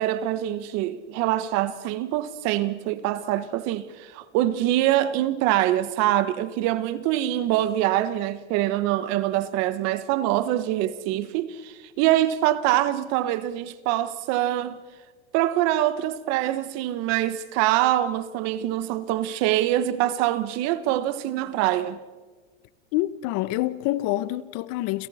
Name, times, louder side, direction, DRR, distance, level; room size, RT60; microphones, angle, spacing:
voice 1, 0.0-14.8 15.3-22.0, right 13 dB, 45° right, 1.3 m, -24 dB
voice 2, 22.9-25.1, left 16 dB, 45° left, 1.0 m, -26 dB
30.0 x 28.5 x 4.3 m
supercardioid pair, 135°, 36 cm